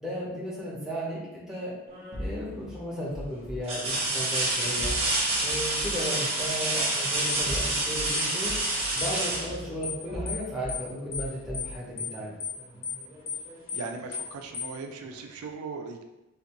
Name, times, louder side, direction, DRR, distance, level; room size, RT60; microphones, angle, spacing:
voice 1, 0.0-1.7 2.2-4.9 5.4-8.6 8.9-12.3, equal, ahead, -7 dB, 0.7 m, -35 dB
sound 1, 1.9-2.4 2.9-3.0 3.6-10.3 12.1-12.2 12.7-13.7 15.0-15.1, right 2 dB, 25° right, 0.9 m, -29 dB
sound 2, 2.1-3.6 4.8-6.1 7.3-8.1 8.4-10.8 11.1-11.8, equal, 35° left, 0.8 m, -39 dB
sound 3, 7.3-7.4 8.1-8.3 9.0-9.1 9.8-10.0 10.3-10.4 10.7-10.9 11.1-11.3 11.5-11.7 12.0-12.1 12.4-12.6 12.8-13.0 13.3-13.4 13.7-13.9 14.1-14.3 14.5-14.7, left 6 dB, 80° left, 0.7 m, -35 dB
voice 2, 13.7-16.0, right 4 dB, 80° right, 4 dB, 0.4 m, -38 dB
3.4 x 2.5 x 2.9 m, 0.99 s
head